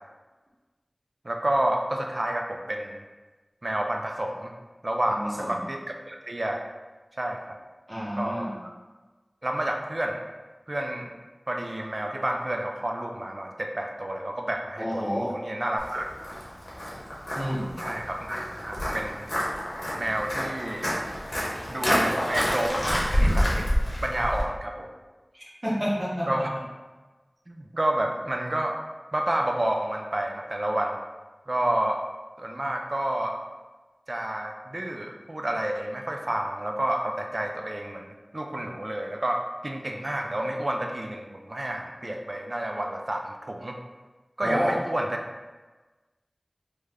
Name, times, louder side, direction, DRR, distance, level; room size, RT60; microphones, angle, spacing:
voice 1, 1.2-3.0 3.6-4.5 4.8-6.6 7.2-7.6 8.2-8.5 9.4-10.2 10.7-11.1 11.5-15.0 15.3-16.1 17.8-19.3 20.0-20.9 21.7-23.7 24.0-24.9 26.3-26.5 27.5-28.8 29.1-31.0 31.5-32.0 32.4-33.4 34.1-43.8 44.4-45.2, right 1 dB, 55° right, 2 dB, 0.3 m, -29 dB
voice 2, 5.1-5.6 7.9-8.5 14.8-15.3 17.3-17.7 25.3-26.5 44.4-44.8, equal, 40° right, -6 dB, 0.9 m, -29 dB
Walk footsteps, 15.8-24.4, equal, 85° left, 0.7 m, -28 dB
3.2 x 2.1 x 3.5 m, 1.3 s
wide cardioid pair, 50°, 0 cm